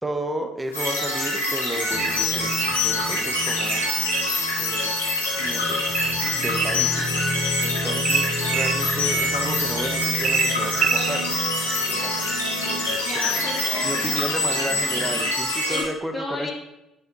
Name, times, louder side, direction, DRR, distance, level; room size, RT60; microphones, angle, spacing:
voice 1, 0.0-2.5 2.8-3.9 4.6-5.0 5.4-11.4 11.9-13.4 13.8-16.5, right 1 dB, 10° right, 6 dB, 1.1 m, -33 dB
sound 1, 0.7-15.8, left 2 dB, 85° left, 1.9 m, -25 dB
sound 2, 1.9-15.2, equal, 55° left, 2.0 m, -34 dB
sound 3, 2.0-2.8 3.6-4.4 5.9-6.8 8.0-8.8 10.2-11.1, right 7 dB, 45° right, 0.4 m, -26 dB
voice 2, 12.9-14.6 15.7-16.5, left 2 dB, 20° left, -8 dB, 2.5 m, -34 dB
12.0 x 5.1 x 3.0 m, 0.92 s
figure-of-eight pair, 50°, 0 cm